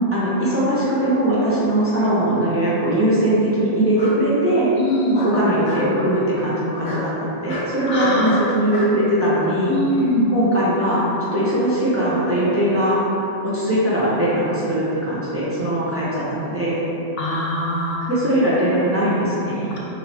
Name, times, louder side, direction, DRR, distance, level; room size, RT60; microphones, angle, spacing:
voice 1, 0.1-4.7 5.2-9.7 10.3-11.1 11.3-13.2 13.5-16.8 18.1-19.7, right 1 dB, 15° right, -10 dB, 0.8 m, -20 dB
Bark, 1.8-2.4 3.9-4.2 5.1-5.9 6.8-7.1 7.5-7.7 8.2-8.9, left 1 dB, 85° left, 1.3 m, -32 dB
voice 2, 4.8-5.2 7.9-8.5 9.7-10.3 17.2-18.1 19.7-19.8, left 1 dB, 65° left, -4 dB, 0.8 m, -22 dB
5.1 x 2.8 x 3.4 m, 3.0 s
omnidirectional pair, 1.2 m